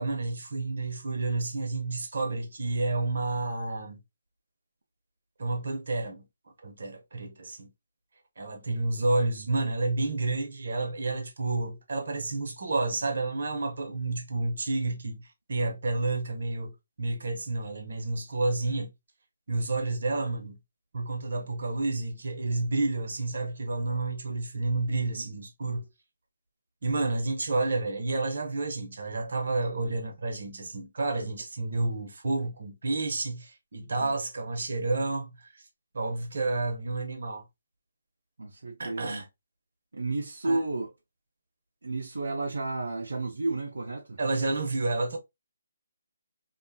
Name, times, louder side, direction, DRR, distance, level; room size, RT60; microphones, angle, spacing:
voice 1, 0.0-4.0 5.4-6.2 6.6-7.7 8.4-15.2 15.5-16.7 17.0-18.9 19.5-20.6 20.9-25.9 26.8-35.3 35.9-37.4 38.8-39.2 40.4-40.6 44.2-45.2, right 2 dB, 65° right, 1.0 m, -30 dB
voice 2, 38.4-39.2 39.9-40.9 41.8-44.2, right 2 dB, 85° right, 0.6 m, -32 dB
2.8 x 2.3 x 2.6 m
figure-of-eight pair, 155°, 0 cm